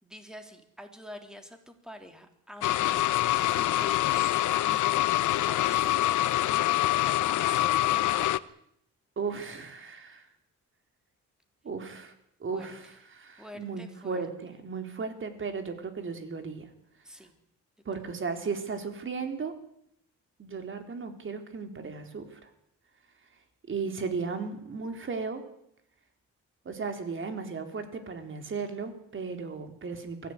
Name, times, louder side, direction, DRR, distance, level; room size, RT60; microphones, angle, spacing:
voice 1, 0.0-3.2 3.5-8.3 12.5-12.7 13.4-14.2 17.0-17.3, equal, ahead, 6 dB, 3.6 m, -47 dB
sound 1, 2.6-8.4, left 15 dB, 85° left, 0.9 m, -25 dB
voice 2, 9.2-10.3 11.6-12.1 12.4-16.7 17.9-19.5 20.4-22.5 23.7-25.4 26.6-30.3, right 5 dB, 40° right, 7 dB, 4.0 m, -35 dB
23.5 x 16.0 x 9.9 m, 0.73 s
cardioid pair, 115°, 30 cm